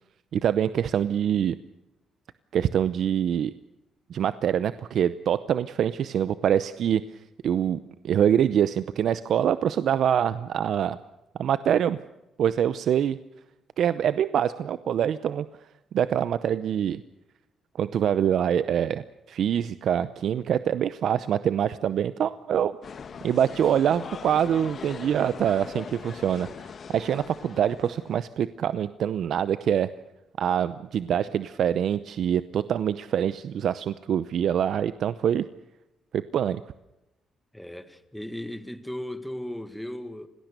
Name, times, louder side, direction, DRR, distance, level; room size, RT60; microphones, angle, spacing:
voice 1, 0.3-1.5 2.5-3.5 4.1-7.0 7.4-7.8 8.0-11.0 11.4-12.0 12.4-13.2 13.8-15.5 15.9-17.0 17.8-22.8 23.2-26.5 26.9-29.9 30.4-35.5 36.1-36.6, right 9 dB, 65° right, 0.7 m, -25 dB
sound 1, 22.8-28.2, left 6 dB, 50° left, 1.3 m, -41 dB
voice 2, 37.5-40.3, left 1 dB, 5° left, 1.9 m, -37 dB
27.5 x 18.5 x 6.7 m
cardioid pair, 90°, 0 cm